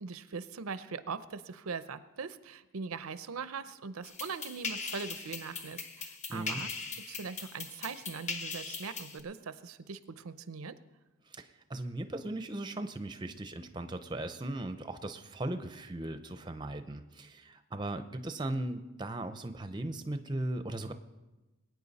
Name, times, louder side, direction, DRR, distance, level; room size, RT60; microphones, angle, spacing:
voice 1, 0.0-6.7 7.1-10.8, right 5 dB, 80° right, 13 dB, 0.6 m, -41 dB
sound 1, 4.0-9.2, left 4 dB, 30° left, 1.1 m, -40 dB
voice 2, 6.3-6.6 11.3-20.9, right 1 dB, 20° right, 9 dB, 0.6 m, -38 dB
21.5 x 9.2 x 4.1 m, 1.1 s
head